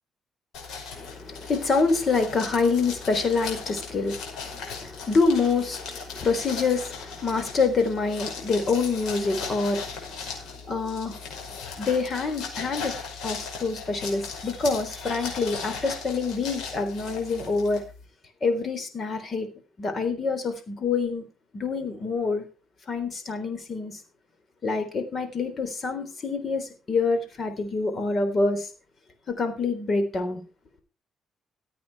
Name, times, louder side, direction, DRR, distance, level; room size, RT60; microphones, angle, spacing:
sound 1, 0.5-18.0, left 5 dB, 80° left, 5.3 m, -38 dB
voice 1, 0.9-11.2 11.8-13.0 13.2-17.8 18.4-19.5 19.8-21.2 21.5-22.4 22.9-24.0 24.6-28.7 29.3-30.4, left 4 dB, 45° left, 8 dB, 3.7 m, -26 dB
14.5 x 8.6 x 4.8 m, 0.33 s
cardioid pair, 90°, 0 cm